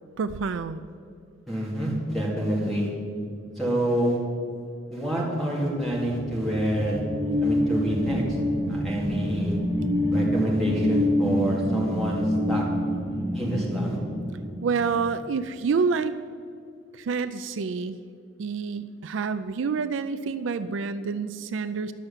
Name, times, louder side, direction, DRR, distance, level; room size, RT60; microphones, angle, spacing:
voice 1, 0.2-0.9 14.6-16.2 16.9-18.0 18.4-21.9, right 5 dB, 70° right, 12 dB, 0.4 m, -28 dB
voice 2, 1.5-2.9 3.6-4.2 4.9-7.0 7.4-8.2 8.7-9.6 10.1-12.6 13.3-14.0, equal, ahead, -5 dB, 2.5 m, -27 dB
sound 1, 6.1-15.1, equal, 25° right, 1.1 m, -27 dB
11.5 x 6.7 x 7.2 m, 2.4 s
head